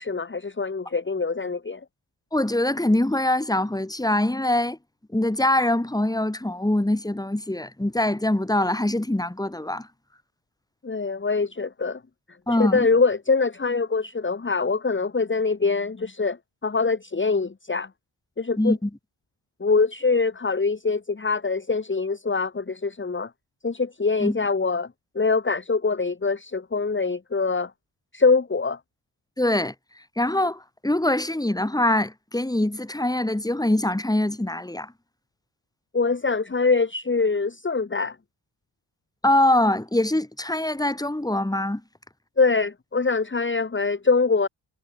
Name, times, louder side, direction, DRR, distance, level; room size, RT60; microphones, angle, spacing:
voice 1, 0.0-1.8 10.8-12.0 12.5-16.4 16.6-17.9 18.4-18.7 19.6-23.3 23.6-24.9 25.2-27.7 28.1-28.8 35.9-38.2 42.4-44.5, left 4 dB, 25° left, 1.8 m, -24 dB
voice 2, 2.3-4.8 5.1-9.9 12.5-12.9 18.6-18.9 24.2-24.4 29.4-29.7 30.2-34.9 39.2-41.8, left 1 dB, 5° left, 2.8 m, -23 dB
wide cardioid pair, 115°, 50 cm